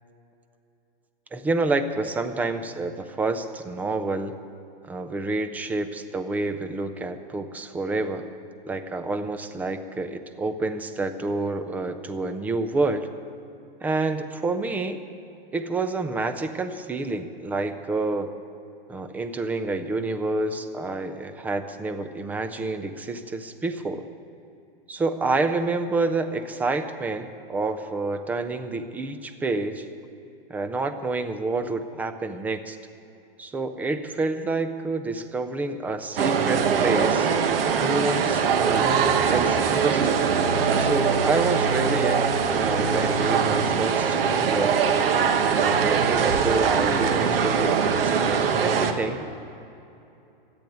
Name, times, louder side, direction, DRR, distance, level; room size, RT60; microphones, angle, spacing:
voice 1, 1.3-4.4 4.8-8.3 8.7-13.1 13.8-15.0 15.5-18.3 18.9-24.1 24.9-29.9 30.5-32.8 33.4-37.3 37.8-40.2 40.8-44.8 45.4-49.2, right 3 dB, 5° right, 9 dB, 0.4 m, -28 dB
sound 1, 36.2-48.9, right 6 dB, 75° right, 1.3 m, -22 dB
14.0 x 8.6 x 9.3 m, 2.7 s
hypercardioid pair, 140°, 29 cm